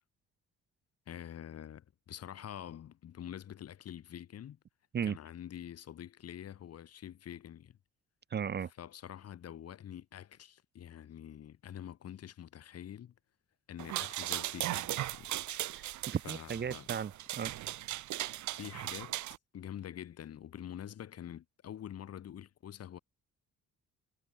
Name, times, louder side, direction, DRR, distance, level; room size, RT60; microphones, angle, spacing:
voice 1, 1.1-4.6 5.0-7.8 8.8-13.1 13.7-15.4 16.2-16.9 18.5-19.2 19.5-23.0, left 10 dB, 55° left, 1.2 m, -46 dB
voice 2, 8.3-8.7 15.7-17.5, right 7 dB, 35° right, 0.6 m, -36 dB
sound 1, 13.8-19.4, right 15 dB, 75° right, 0.8 m, -38 dB
cardioid pair, 90°, 30 cm